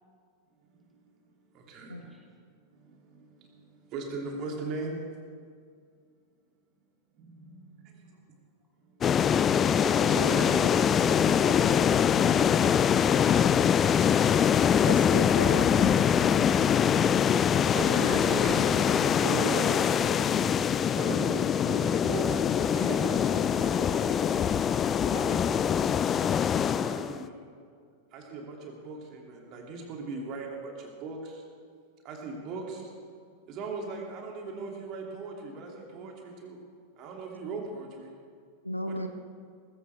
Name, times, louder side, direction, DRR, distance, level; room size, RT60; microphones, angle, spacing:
voice 1, 1.5-2.1 3.9-5.0 7.2-7.8 9.6-10.5 15.8-15.9 17.5-20.3 20.9-22.3 22.6-24.7 25.1-25.6 26.8-27.4 28.1-31.3 32.0-32.9 33.5-36.6 37.0-38.1 38.8-39.0, right 3 dB, 40° right, 0 dB, 2.9 m, -38 dB
sound 1, 9.0-27.2, left 8 dB, 25° left, 0.4 m, -24 dB
voice 2, 10.4-10.7 10.9-12.5, equal, 5° right, -1 dB, 3.3 m, -40 dB
voice 3, 14.8-16.0 38.6-39.1, equal, 90° left, 7 dB, 0.9 m, -34 dB
19.5 x 15.5 x 3.6 m, 2.1 s
figure-of-eight pair, 90°, 0 cm